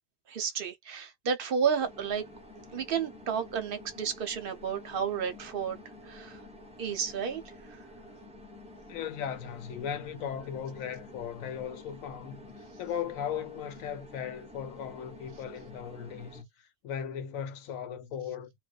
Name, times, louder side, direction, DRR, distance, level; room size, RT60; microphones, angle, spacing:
voice 1, 0.3-2.2 2.7-5.8 6.0-6.4 6.8-7.4 7.7-7.8, right 7 dB, 55° right, 0.7 m, -31 dB
sound 1, 1.8-16.4, left 1 dB, 10° right, 0.4 m, -50 dB
voice 2, 8.9-12.5 12.8-18.5, left 8 dB, 85° left, 1.1 m, -37 dB
2.4 x 2.2 x 2.3 m
omnidirectional pair, 1.4 m